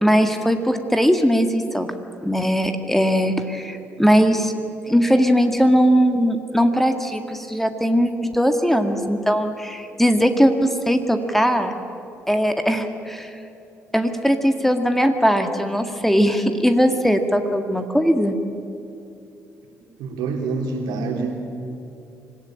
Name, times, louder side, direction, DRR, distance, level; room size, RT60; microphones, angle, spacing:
voice 1, 0.0-1.9 2.2-4.5 4.9-11.7 12.3-13.3 13.9-18.4, equal, 5° left, 7 dB, 1.8 m, -19 dB
voice 2, 20.0-21.4, right 4 dB, 65° right, 2 dB, 3.2 m, -26 dB
25.5 x 16.5 x 8.8 m, 2.7 s
figure-of-eight pair, 45°, 7 cm